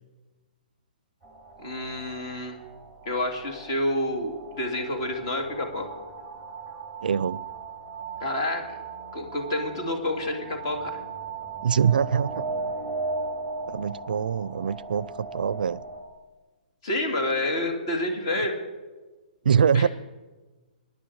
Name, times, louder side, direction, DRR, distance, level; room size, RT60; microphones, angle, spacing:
sound 1, 1.2-16.0, right 4 dB, 5° left, 2.3 m, -37 dB
voice 1, 1.6-2.6 3.1-5.9 8.2-8.6 9.1-11.0 16.8-18.6 19.7-19.9, left 1 dB, 35° left, 3 dB, 2.5 m, -28 dB
voice 2, 7.0-7.4 11.6-12.4 13.7-15.8 19.4-19.9, right 7 dB, 75° right, 21 dB, 0.5 m, -24 dB
23.5 x 10.5 x 4.8 m, 1.3 s
hypercardioid pair, 175°, 5 cm